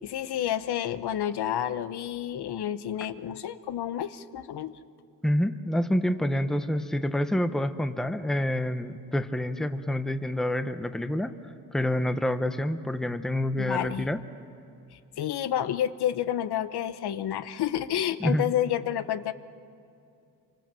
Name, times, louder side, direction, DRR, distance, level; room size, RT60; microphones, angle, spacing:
voice 1, 0.0-4.7 13.6-14.1 14.9-19.3, left 10 dB, 85° left, 12 dB, 1.0 m, -30 dB
voice 2, 5.2-11.3 11.7-14.2 18.2-18.5, left 1 dB, ahead, 9 dB, 0.7 m, -27 dB
27.5 x 25.0 x 7.6 m, 2.6 s
wide cardioid pair, 175°, 38 cm